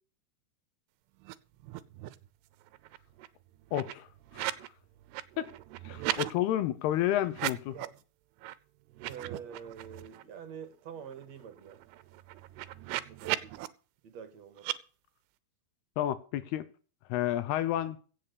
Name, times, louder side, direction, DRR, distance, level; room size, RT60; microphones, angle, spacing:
sound 1, 1.2-2.3 2.6-4.7 5.0-6.3 7.3-8.0 8.4-8.5 8.9-10.2 10.6-10.7 11.0-13.7 14.6-14.8, right 16 dB, 85° right, 2.8 m, -38 dB
voice 1, 3.7-4.1 4.3-4.5 5.4-5.5 5.8-7.8 16.0-16.6 17.1-18.0, left 12 dB, 80° left, 2.9 m, -30 dB
voice 2, 9.0-11.8 13.0-13.7 14.0-14.7, right 7 dB, 50° right, 2.4 m, -46 dB
16.5 x 6.7 x 6.9 m
omnidirectional pair, 4.6 m